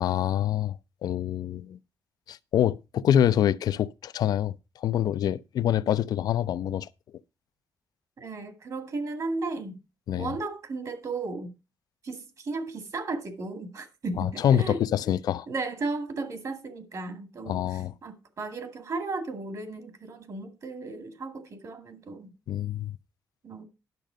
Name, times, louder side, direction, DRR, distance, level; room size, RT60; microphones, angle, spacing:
voice 1, 0.0-1.8 2.3-6.9 10.1-10.3 14.2-15.5 17.5-17.9 22.5-22.9, left 10 dB, 75° left, 0.5 m, -26 dB
voice 2, 8.2-9.8 10.2-11.5 12.0-14.8 15.5-22.3 23.4-23.6, right 3 dB, 55° right, 2.1 m, -35 dB
11.0 x 6.5 x 5.0 m
cardioid pair, 100°, 7 cm